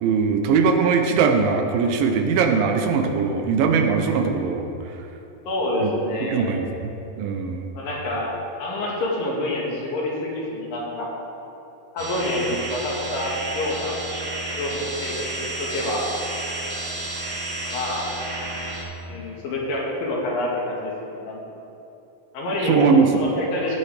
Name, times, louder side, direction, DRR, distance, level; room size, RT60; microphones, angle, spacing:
voice 1, 0.0-4.7 5.8-5.9 6.3-6.9 7.2-7.7 22.6-23.2, right 5 dB, 90° right, 4 dB, 2.6 m, -20 dB
voice 2, 5.4-6.7 7.7-8.3 8.6-11.1 11.9-14.0 14.5-16.1 17.7-18.1 19.0-21.4 22.3-23.8, left 1 dB, 75° left, -4 dB, 3.4 m, -27 dB
sound 1, 12.0-18.8, right 2 dB, 25° right, 1.8 m, -31 dB
17.5 x 7.1 x 3.4 m, 2.8 s
omnidirectional pair, 4.0 m